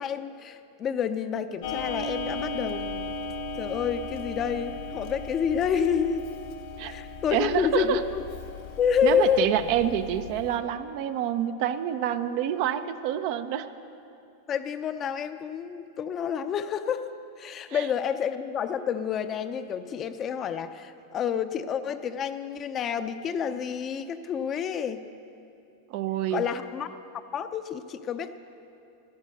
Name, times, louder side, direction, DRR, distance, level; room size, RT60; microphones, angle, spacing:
voice 1, 0.0-3.1 3.5-6.2 6.8-8.0 8.8-9.5 14.5-17.1 17.4-25.0 26.3-27.0 27.3-28.4, left 8 dB, 35° left, 10 dB, 0.7 m, -29 dB
Clock, 1.6-10.6, left 2 dB, 65° left, 1.5 m, -37 dB
voice 2, 7.3-8.0 9.0-13.7 17.7-17.8 25.9-26.4, right 10 dB, 55° right, 10 dB, 0.7 m, -27 dB
13.5 x 10.5 x 6.6 m, 2.7 s
hypercardioid pair, 100°, 0 cm